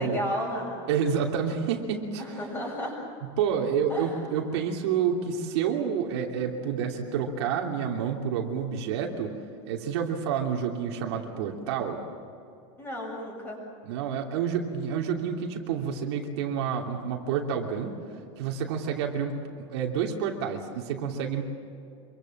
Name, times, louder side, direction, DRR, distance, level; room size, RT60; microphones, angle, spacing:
voice 1, 0.0-0.8 2.2-3.0 3.9-4.4 12.8-13.6, equal, 15° left, 0 dB, 7.5 m, -33 dB
voice 2, 0.9-2.2 3.4-9.3 9.7-12.0 13.8-17.9 18.4-21.4, right 7 dB, 60° right, 1 dB, 3.0 m, -29 dB
26.5 x 24.0 x 7.4 m, 2.5 s
supercardioid pair, 165°, 16 cm